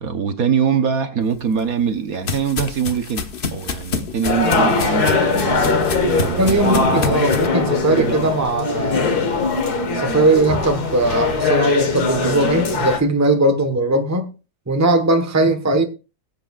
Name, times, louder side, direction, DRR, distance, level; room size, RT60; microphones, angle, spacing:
voice 1, 0.0-7.1, right 6 dB, 60° right, 1.4 m, -23 dB
sound 1, 1.4-7.5, left 5 dB, 40° left, 0.9 m, -28 dB
sound 2, 4.2-13.0, left 3 dB, 65° left, 2.0 m, -20 dB
voice 2, 6.4-9.2 9.9-14.3 14.7-15.8, right 2 dB, 10° right, 1.0 m, -19 dB
21.5 x 8.1 x 2.4 m
omnidirectional pair, 1.8 m